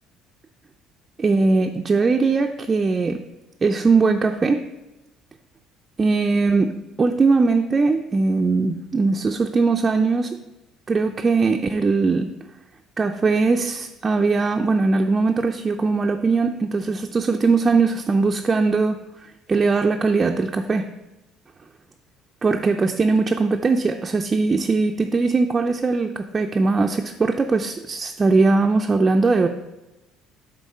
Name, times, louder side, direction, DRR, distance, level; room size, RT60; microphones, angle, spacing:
voice 1, 1.2-3.2 3.6-4.6 6.0-10.4 10.9-12.3 13.0-20.9 22.4-29.5, right 4 dB, 25° right, 4 dB, 0.4 m, -20 dB
8.2 x 3.7 x 5.4 m, 1.0 s
cardioid pair, 130°, 0 cm